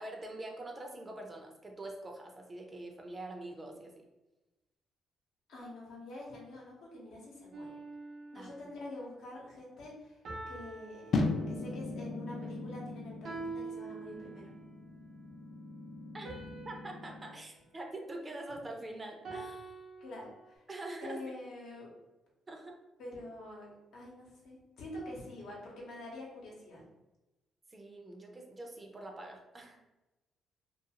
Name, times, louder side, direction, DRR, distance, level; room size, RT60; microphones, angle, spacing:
voice 1, 0.0-3.9 8.3-8.5 16.1-16.3 16.6-19.8 20.7-21.2 22.5-22.8 27.7-29.8, right 2 dB, 25° right, 1 dB, 0.5 m, -44 dB
voice 2, 5.5-7.7 8.3-10.2 10.5-11.2 11.5-14.5 20.0-20.6 21.0-21.9 23.0-26.8, left 1 dB, 80° left, -3 dB, 0.8 m, -46 dB
sound 1, 7.5-8.8 10.3-11.9 13.3-14.7 16.3-18.7 19.3-20.6, right 3 dB, 65° right, 0.6 m, -46 dB
sound 2, 11.1-17.3, left 3 dB, 60° left, 0.3 m, -38 dB
2.4 x 2.3 x 2.8 m, 1.0 s
cardioid pair, 90°, 0 cm